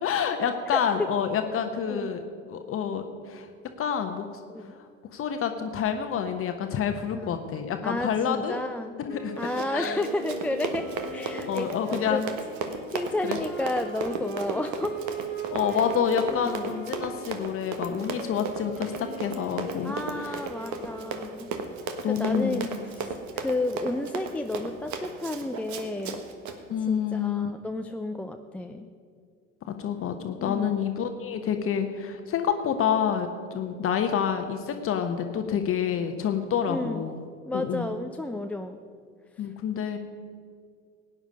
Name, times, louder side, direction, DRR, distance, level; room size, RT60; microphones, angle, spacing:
voice 1, 0.0-2.2 2.5-3.5 3.8-4.3 5.1-8.6 9.0-9.4 9.7-10.0 11.5-12.3 13.3-13.4 15.5-20.4 22.0-22.6 26.7-27.5 29.7-33.3 33.5-37.2 37.5-37.9 39.4-40.0, left 8 dB, 35° left, 6 dB, 1.1 m, -28 dB
voice 2, 0.7-1.1 1.9-2.1 4.5-4.8 7.1-7.4 7.8-9.0 9.4-10.9 11.1-12.2 12.9-14.9 15.7-15.8 16.3-16.7 18.2-18.4 19.8-21.5 22.1-26.2 26.8-28.9 30.4-30.7 36.7-37.0 37.4-38.8, left 2 dB, 5° left, 5 dB, 0.4 m, -32 dB
Wind instrument woodwind instrument, 9.0-21.5, right 3 dB, 90° right, 2.7 m, -40 dB
Run, 9.4-26.6, right 5 dB, 45° right, 1.5 m, -35 dB
17.0 x 9.7 x 5.3 m, 2.1 s
figure-of-eight pair, 70°, 39 cm